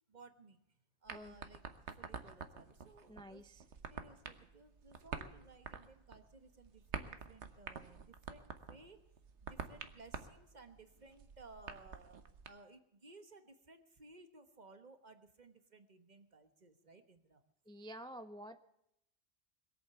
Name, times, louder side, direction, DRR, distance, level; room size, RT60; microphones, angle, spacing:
voice 1, 0.1-1.6 1.9-3.5 3.9-9.0 9.4-17.4, right 3 dB, 40° right, 9 dB, 1.4 m, -59 dB
sound 1, 1.1-12.5, right 6 dB, 70° right, 1.4 m, -48 dB
voice 2, 3.1-3.6 17.7-18.6, equal, 5° left, 10 dB, 0.4 m, -50 dB
21.5 x 8.4 x 6.9 m, 0.79 s
omnidirectional pair, 1.2 m